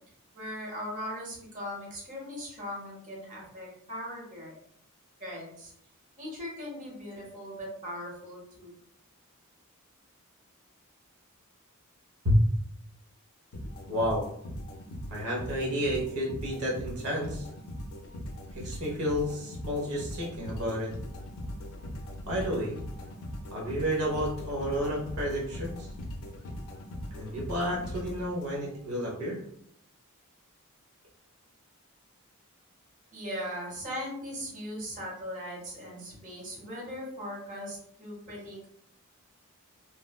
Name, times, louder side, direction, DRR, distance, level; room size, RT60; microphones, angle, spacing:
voice 1, 0.3-4.5 5.2-5.7 6.2-8.7 33.1-38.7, equal, 35° right, -4 dB, 0.9 m, -39 dB
sound 1, 13.5-28.8, left 1 dB, 65° left, 0.4 m, -40 dB
voice 2, 13.9-14.3 15.1-17.5 18.5-20.9 22.3-22.7 23.5-25.9 27.2-29.4, equal, 75° right, -3 dB, 0.9 m, -30 dB
3.0 x 2.1 x 2.2 m, 0.67 s
head